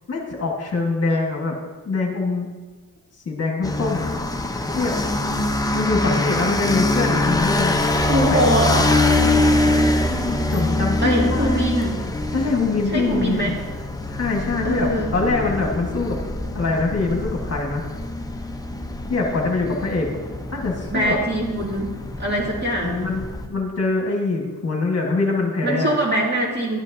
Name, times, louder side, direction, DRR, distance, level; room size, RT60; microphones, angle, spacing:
voice 1, 0.1-1.6 1.8-2.5 3.2-4.1 4.8-5.0 5.7-7.8 8.3-8.5 10.0-11.6 12.3-13.6 14.1-16.2 16.5-17.8 19.1-20.1 20.5-21.2 22.8-25.9, left 3 dB, 40° left, 0 dB, 1.5 m, -24 dB
sound 1, 3.6-23.5, left 1 dB, 10° left, 0.7 m, -24 dB
voice 2, 8.1-9.0 11.0-12.0 12.9-13.5 14.6-15.1 20.9-21.9 22.2-23.2 25.6-26.8, right 1 dB, 30° right, -3 dB, 2.3 m, -22 dB
11.5 x 8.1 x 2.7 m, 1.3 s
cardioid pair, 95°, 37 cm